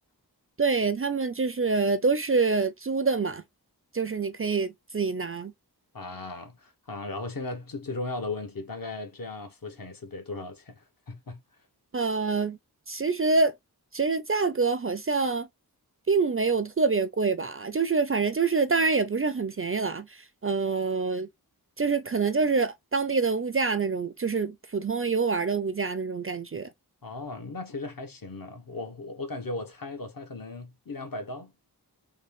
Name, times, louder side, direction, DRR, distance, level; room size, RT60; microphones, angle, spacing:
voice 1, 0.6-3.4 3.9-5.5 11.9-12.6 12.9-13.5 13.9-15.5 16.1-20.1 20.4-21.3 21.8-26.7, right 4 dB, 35° right, 0.4 m, -26 dB
voice 2, 5.9-11.4 27.0-31.5, left 3 dB, 55° left, 1.0 m, -37 dB
3.8 x 2.2 x 3.4 m
wide cardioid pair, 70°, 40 cm